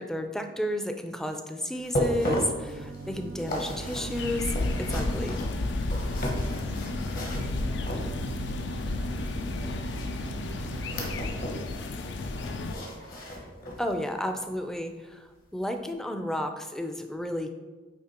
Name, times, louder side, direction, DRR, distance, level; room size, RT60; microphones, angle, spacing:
voice 1, 0.0-5.4 13.8-17.5, left 1 dB, 5° left, 6 dB, 0.4 m, -32 dB
sound 1, 1.7-8.5 9.9-11.7 12.0-13.9 14.4-14.5 15.1-15.2, equal, 50° left, 1.2 m, -35 dB
sound 2, 2.5-11.5, right 4 dB, 85° right, 0.4 m, -42 dB
sound 3, 4.1-12.7, left 2 dB, 70° left, 0.5 m, -32 dB
voice 2, 5.9-6.9 7.4-12.9, left 1 dB, 85° left, -4 dB, 1.1 m, -50 dB
8.8 x 3.2 x 4.3 m, 1.3 s
head